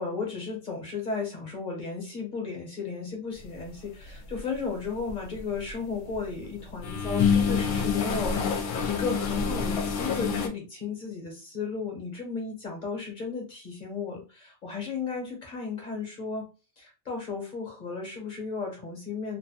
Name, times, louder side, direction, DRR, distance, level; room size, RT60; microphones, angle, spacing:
voice 1, 0.0-16.5 16.8-19.4, left 4 dB, 45° left, 1 dB, 1.0 m, -34 dB
sound 1, 4.1-4.4 4.8-6.2 6.6-10.5, left 6 dB, 70° left, 0.8 m, -27 dB
2.9 x 2.1 x 2.7 m, 0.32 s
omnidirectional pair, 1.2 m